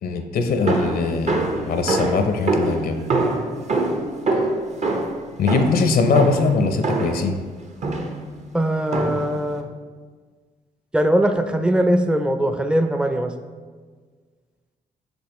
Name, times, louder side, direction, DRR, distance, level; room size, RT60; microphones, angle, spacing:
voice 1, 0.0-1.4 1.7-3.1 5.4-7.4, left 4 dB, 70° left, 7 dB, 0.6 m, -21 dB
sound 1, 0.7-7.3 7.8-8.3 8.9-9.4, right 2 dB, 45° right, 0.8 m, -24 dB
voice 2, 8.5-9.7 10.9-13.3, right 1 dB, 5° right, 7 dB, 0.4 m, -20 dB
6.2 x 5.3 x 3.0 m, 1.5 s
supercardioid pair, 60°, 16 cm